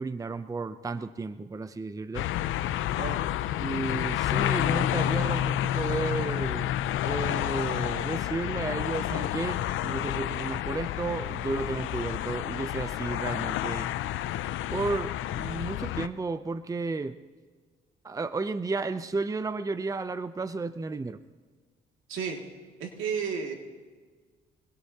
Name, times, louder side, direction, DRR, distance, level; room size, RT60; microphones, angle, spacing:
voice 1, 0.0-2.3 3.6-6.7 7.0-13.9 14.7-17.2 18.0-21.2, right 3 dB, 15° right, 11 dB, 0.6 m, -33 dB
sound 1, 2.1-16.1, left 12 dB, 80° left, 0.6 m, -30 dB
voice 2, 22.1-22.4 22.8-23.5, right 6 dB, 85° right, 1 dB, 2.4 m, -32 dB
25.0 x 19.5 x 2.9 m, 1.5 s
cardioid pair, 90°, 20 cm